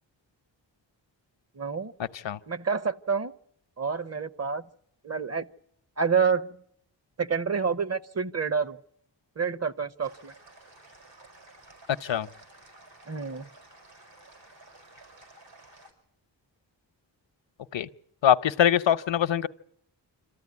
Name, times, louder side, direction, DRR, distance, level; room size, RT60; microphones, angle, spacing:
voice 1, 1.6-1.9 2.5-3.3 3.8-4.6 5.0-5.5 6.0-6.6 7.2-8.8 9.4-10.3 13.1-13.5, right 6 dB, 35° right, 0.9 m, -28 dB
sound 1, 10.0-15.9, right 2 dB, 75° right, 5.8 m, -53 dB
voice 2, 18.2-19.5, left 10 dB, 75° left, 0.8 m, -23 dB
26.5 x 14.0 x 9.6 m
wide cardioid pair, 75°, 44 cm